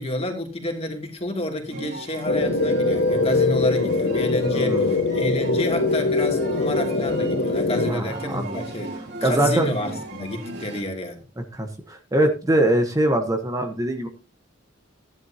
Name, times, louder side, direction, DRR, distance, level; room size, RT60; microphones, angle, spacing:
voice 1, 0.0-11.2, left 1 dB, 30° left, 2.8 m, -29 dB
sound 1, 1.7-10.8, right 2 dB, 55° right, 3.6 m, -36 dB
sound 2, 2.3-7.9, left 3 dB, 65° left, 1.2 m, -22 dB
voice 2, 4.5-5.0 7.9-8.6 9.2-9.7 11.5-14.1, right 1 dB, 15° right, 1.1 m, -22 dB
15.0 x 11.0 x 2.9 m
head